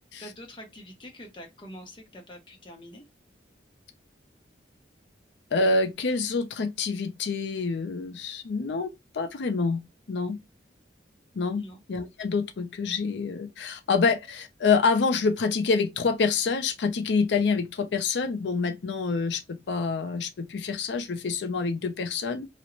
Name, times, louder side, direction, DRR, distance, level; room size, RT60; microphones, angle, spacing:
voice 1, 0.2-3.0 11.6-11.8, equal, 25° left, 0.6 m, -45 dB
voice 2, 5.5-9.8 10.1-10.4 11.4-11.6 11.9-22.5, left 4 dB, 70° left, 0.4 m, -27 dB
2.4 x 2.0 x 2.8 m
head